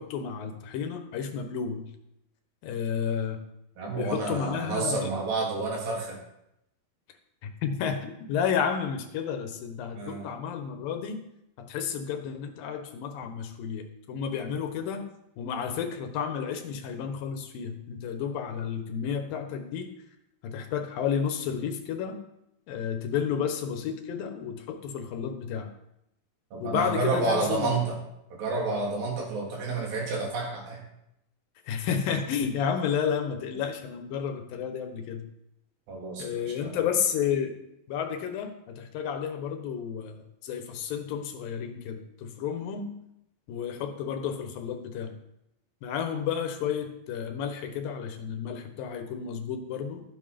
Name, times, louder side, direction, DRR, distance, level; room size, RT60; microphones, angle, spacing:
voice 1, 0.0-1.9 2.6-3.4 3.9-5.1 7.4-11.2 11.6-15.0 15.4-19.9 20.4-22.2 22.7-25.7 26.6-27.8 31.6-35.3 36.2-37.6 37.9-42.9 43.5-45.2 45.8-50.0, left 7 dB, 80° left, 7 dB, 2.9 m, -31 dB
voice 2, 3.8-6.2 9.9-10.3 26.5-28.0 28.4-30.8 35.9-36.8, right 3 dB, 75° right, -2 dB, 5.0 m, -30 dB
13.5 x 9.5 x 5.1 m, 0.82 s
omnidirectional pair, 4.1 m